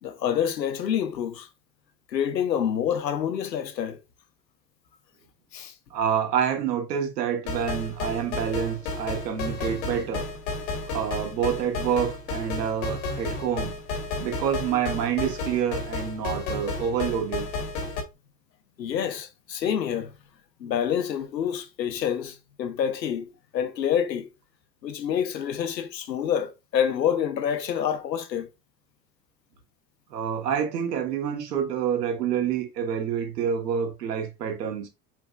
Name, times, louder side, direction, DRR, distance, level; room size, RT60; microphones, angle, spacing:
voice 1, 0.0-1.5 2.1-4.0 5.5-5.7 18.8-20.1 20.6-24.3 24.8-28.5, left 8 dB, 85° left, 0.7 m, -27 dB
voice 2, 5.9-10.3 10.8-13.7 14.2-17.5 30.1-34.9, right 8 dB, 75° right, 1.3 m, -27 dB
sound 1, 7.5-18.0, left 3 dB, 60° left, 1.3 m, -32 dB
4.8 x 3.4 x 2.3 m
figure-of-eight pair, 70°, 49 cm